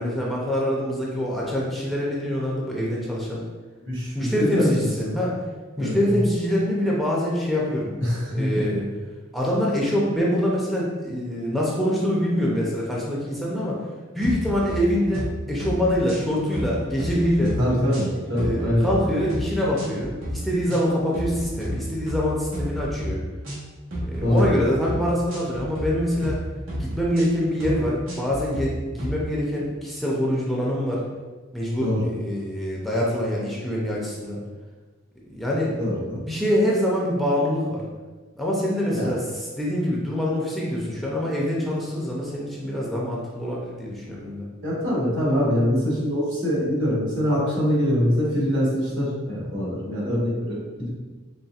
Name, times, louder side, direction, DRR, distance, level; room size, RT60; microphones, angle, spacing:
voice 1, 0.0-3.5 4.1-5.3 5.8-7.9 8.3-8.9 9.3-13.8 14.1-17.5 18.3-23.2 24.0-26.4 26.8-31.0 31.5-34.4 35.3-35.7 36.3-37.8 38.4-44.5, equal, ahead, -5 dB, 0.5 m, -25 dB
voice 2, 3.8-5.2 5.8-5.9 8.0-8.8 17.4-18.8 24.2-24.5 31.8-32.0 35.8-36.2 38.9-39.1 44.6-50.9, equal, 65° right, -6 dB, 1.4 m, -24 dB
sound 1, 14.2-14.8 15.1-15.3 15.6-16.3 16.5-17.6 17.9-18.9 19.3-19.5 19.8-20.3 20.7-20.9 21.1-21.7 22.1-22.2 22.5-23.1 23.4-23.6 23.9-24.5 24.8-25.0 25.3-25.9 26.2-26.4 26.7-27.2 27.6-27.8 28.1-28.6 29.0-29.2, equal, 85° right, 1.2 m, -31 dB
4.1 x 3.5 x 2.4 m, 1.3 s
head